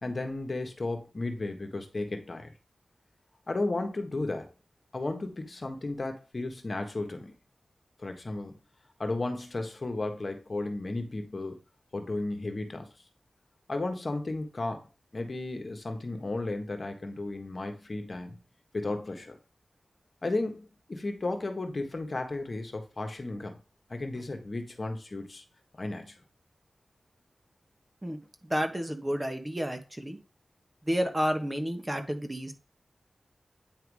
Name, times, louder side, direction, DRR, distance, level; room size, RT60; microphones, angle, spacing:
voice 1, 0.0-2.5 3.5-4.5 4.9-7.3 8.0-8.6 9.0-11.6 11.9-12.9 13.7-14.9 15.1-18.4 18.7-19.4 20.2-23.6 23.9-25.4 25.7-26.2, left 2 dB, 50° left, 5 dB, 1.4 m, -34 dB
voice 2, 28.0-30.2 30.8-32.5, equal, 20° right, 6 dB, 1.5 m, -31 dB
9.1 x 3.6 x 4.8 m, 0.32 s
cardioid pair, 50°, 0 cm